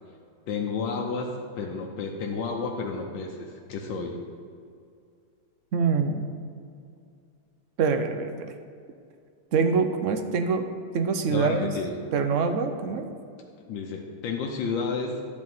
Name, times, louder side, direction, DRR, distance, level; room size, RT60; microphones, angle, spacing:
voice 1, 0.5-4.2 11.3-11.9 13.7-15.2, left 4 dB, 80° left, 0 dB, 1.5 m, -31 dB
voice 2, 5.7-6.3 7.8-8.5 9.5-10.7 10.9-11.7 12.1-13.1, right 5 dB, 70° right, 7 dB, 0.7 m, -25 dB
12.0 x 4.4 x 7.6 m, 2.3 s
omnidirectional pair, 2.0 m